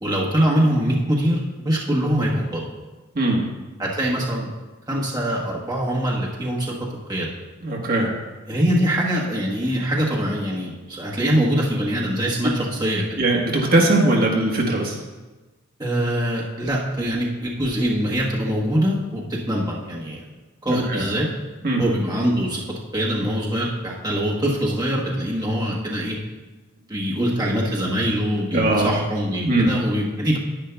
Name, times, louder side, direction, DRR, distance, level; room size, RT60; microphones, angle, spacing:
voice 1, 0.0-1.4 1.6-2.6 3.8-4.5 4.9-6.7 7.1-7.3 8.5-13.2 15.8-20.2 20.6-21.3 21.8-22.6 22.9-26.1 26.9-30.4, equal, 20° right, -5 dB, 1.3 m, -23 dB
voice 2, 7.6-8.1 13.2-15.0 20.7-21.1 21.6-21.8 28.5-28.9 29.4-29.7, right 2 dB, 45° right, -1 dB, 1.3 m, -20 dB
10.5 x 10.0 x 2.3 m, 1.2 s
head